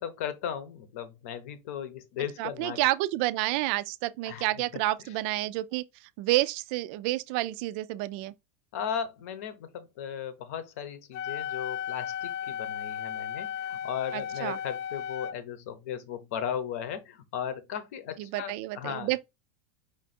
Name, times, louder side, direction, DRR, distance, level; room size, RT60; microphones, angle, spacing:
voice 1, 0.0-2.8 4.2-4.5 5.0-5.1 8.7-19.1, left 8 dB, 65° left, 0.9 m, -36 dB
voice 2, 2.4-5.8 6.2-8.3 14.1-14.6 18.2-19.2, right 17 dB, 45° right, 0.3 m, -29 dB
Wind instrument woodwind instrument, 11.1-15.4, left 9 dB, 45° left, 0.4 m, -35 dB
5.2 x 2.3 x 4.2 m
supercardioid pair, 170°, 8 cm